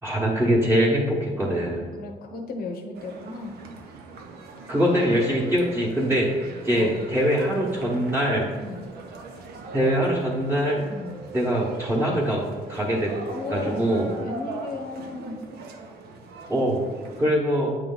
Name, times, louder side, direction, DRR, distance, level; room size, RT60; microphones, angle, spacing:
voice 1, 0.0-1.9 4.7-8.4 9.7-10.8 11.3-12.4 12.7-13.1 13.5-14.1 16.5-16.8 17.2-17.7, equal, 15° right, -5 dB, 1.1 m, -23 dB
voice 2, 1.9-3.5 6.7-6.9 8.6-8.9 10.9-11.2 13.2-13.9 14.2-15.5, left 3 dB, 70° left, 3 dB, 0.9 m, -35 dB
sound 1, 2.9-17.2, right 3 dB, 90° right, 0.8 m, -41 dB
8.3 x 3.3 x 3.9 m, 1.5 s
cardioid pair, 135°, 16 cm